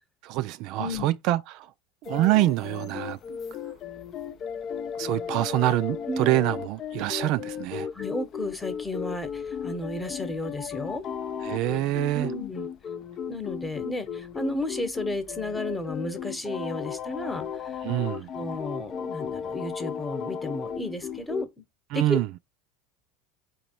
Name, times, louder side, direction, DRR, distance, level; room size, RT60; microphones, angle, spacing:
voice 1, 0.2-1.7 2.0-3.2 4.9-7.9 11.4-12.3 17.8-18.3 21.9-22.3, right 16 dB, 60° right, 0.3 m, -25 dB
voice 2, 0.8-1.2 6.1-6.4 7.9-11.0 12.1-12.7 13.3-17.5 18.3-21.6 21.9-22.4, left 1 dB, 10° left, 1.0 m, -33 dB
sound 1, 2.1-21.5, left 7 dB, 40° left, 0.4 m, -35 dB
4.1 x 2.9 x 4.4 m
supercardioid pair, 100°, 0 cm